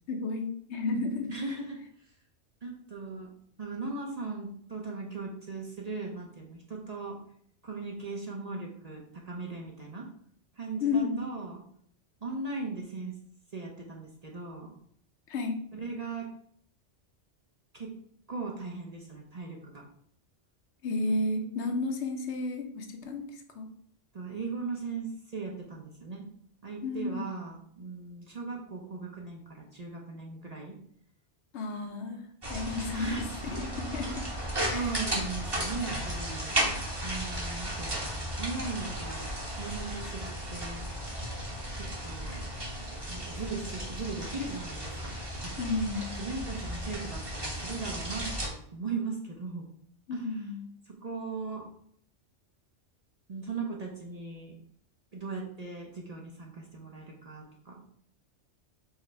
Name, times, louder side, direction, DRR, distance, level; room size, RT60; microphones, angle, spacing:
voice 1, 0.1-1.3 10.8-11.2 15.3-15.6 20.8-23.2 23.5-23.7 26.8-27.2 31.5-33.2 33.4-33.7 33.9-34.2 34.7-34.9 45.6-46.2 50.1-50.7, left 3 dB, 70° left, 4 dB, 1.0 m, -32 dB
voice 2, 1.3-1.8 2.6-3.3 3.6-7.2 7.6-10.1 10.6-11.6 12.2-13.1 13.5-14.7 15.7-16.3 17.7-17.9 18.3-19.8 24.1-26.2 26.6-30.7 32.9-33.2 33.5-33.6 34.0-34.2 34.7-36.6 37.0-40.9 42.0-42.5 43.1-45.1 45.4-45.7 46.2-49.7 50.1-50.4 50.9-51.7 53.3-54.5 55.1-57.8, right 4 dB, 40° right, -1 dB, 0.6 m, -38 dB
sound 1, 32.4-48.5, equal, 20° right, 1.0 m, -35 dB
4.7 x 2.1 x 4.5 m, 0.63 s
omnidirectional pair, 1.2 m